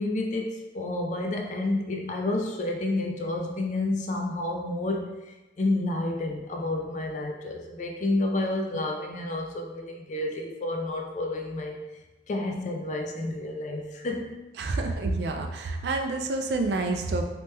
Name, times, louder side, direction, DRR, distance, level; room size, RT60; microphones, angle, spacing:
voice 1, 0.0-11.8 12.3-14.4, left 2 dB, 40° left, 2 dB, 0.3 m, -30 dB
voice 2, 14.6-17.2, right 3 dB, 65° right, 4 dB, 0.3 m, -28 dB
2.9 x 2.2 x 3.1 m, 1.1 s
head